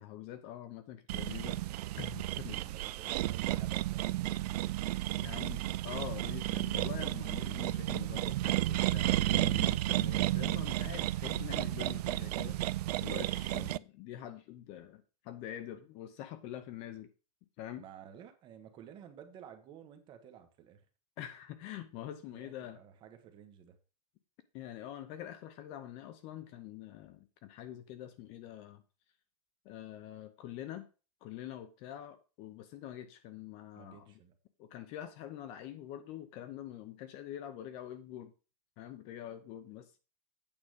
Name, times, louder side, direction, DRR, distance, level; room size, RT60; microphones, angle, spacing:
voice 1, 0.0-1.6 2.0-2.6 5.2-17.1 17.6-17.8 21.2-22.8 24.5-28.8 29.6-30.9 31.2-34.1 34.6-38.3 38.8-39.9, left 11 dB, 30° left, 11 dB, 0.7 m, -45 dB
sound 1, 1.1-13.8, right 15 dB, 75° right, 0.4 m, -33 dB
voice 2, 2.3-4.8 17.8-20.8 22.3-23.8 33.8-34.3, right 8 dB, 25° right, 7 dB, 1.2 m, -53 dB
8.8 x 4.8 x 6.4 m, 0.34 s
supercardioid pair, 170°, 20 cm